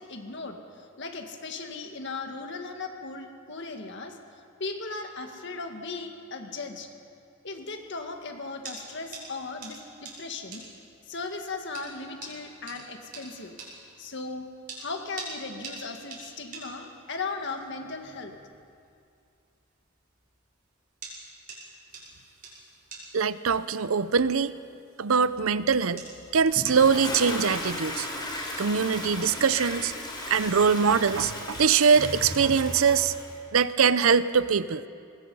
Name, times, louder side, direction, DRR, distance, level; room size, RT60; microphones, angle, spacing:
voice 1, 0.0-4.2 4.6-6.9 7.4-10.7 11.1-13.6 14.0-14.5 14.8-18.4, left 3 dB, 60° left, 4 dB, 1.9 m, -37 dB
sound 1, 7.5-26.2, right 3 dB, 45° right, 6.2 m, -47 dB
voice 2, 23.1-24.5 25.0-26.1 26.3-28.1 28.6-29.9 30.3-33.1 33.5-34.8, right 6 dB, 85° right, 15 dB, 0.6 m, -23 dB
Toilet flush, 26.5-33.3, left 1 dB, 20° left, 3.6 m, -35 dB
24.5 x 20.5 x 5.5 m, 2.4 s
head